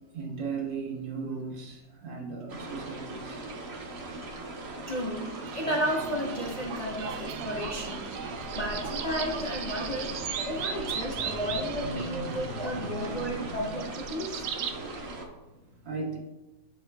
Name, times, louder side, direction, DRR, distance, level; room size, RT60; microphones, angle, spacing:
voice 1, 0.1-3.5 8.3-8.6 10.4-10.7 11.2-13.7 14.4-15.0 15.8-16.2, right 4 dB, 85° right, -1 dB, 2.1 m, -38 dB
sound 1, 2.5-15.3, right 2 dB, 45° right, 1.0 m, -40 dB
voice 2, 4.9-8.0 8.5-10.2 10.5-14.4, equal, 60° left, -2 dB, 0.4 m, -33 dB
sound 2, 5.1-14.8, right 7 dB, 70° right, 1.1 m, -37 dB
9.3 x 6.0 x 2.3 m, 1.1 s
omnidirectional pair, 1.9 m